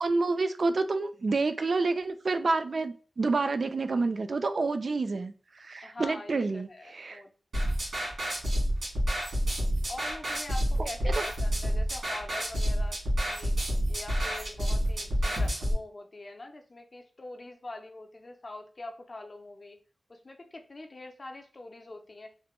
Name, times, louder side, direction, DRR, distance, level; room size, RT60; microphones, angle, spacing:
voice 1, 0.0-7.2 10.8-11.2, right 3 dB, 50° right, 0.3 m, -29 dB
voice 2, 5.8-7.3 9.9-13.0 13.2-13.5 13.9-19.8 20.1-22.3, left 2 dB, 35° left, 0.4 m, -44 dB
sound 1, 7.5-15.7, equal, 85° right, 1.6 m, -29 dB
3.1 x 2.1 x 2.9 m
wide cardioid pair, 110°, 0 cm